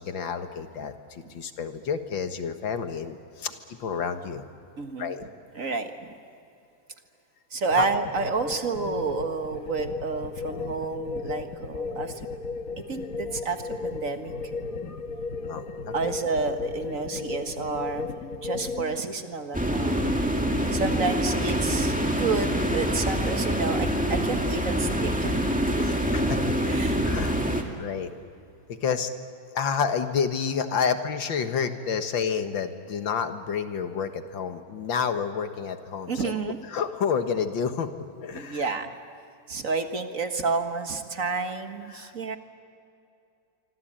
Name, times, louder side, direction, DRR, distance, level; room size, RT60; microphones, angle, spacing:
voice 1, 0.0-4.4 5.0-5.3 5.6-5.7 7.7-7.9 15.5-16.1 25.8-26.4 27.0-27.4 27.8-28.1 28.7-29.1 29.5-36.3 36.7-38.8 41.9-42.1, left 6 dB, 75° left, 8 dB, 2.2 m, -29 dB
voice 2, 4.8-5.1 5.6-6.1 7.5-12.2 12.8-14.3 15.9-18.1 18.4-20.3 20.7-25.4 25.7-26.1 26.6-27.1 27.7-27.8 36.1-36.6 38.3-38.9 39.5-42.4, right 4 dB, 45° right, 7 dB, 1.8 m, -30 dB
sound 1, 7.7-19.0, left 4 dB, 45° left, 1.7 m, -35 dB
sound 2, 19.5-27.6, equal, 5° right, 2.0 m, -25 dB
26.0 x 25.0 x 8.9 m, 2.6 s
omnidirectional pair, 2.1 m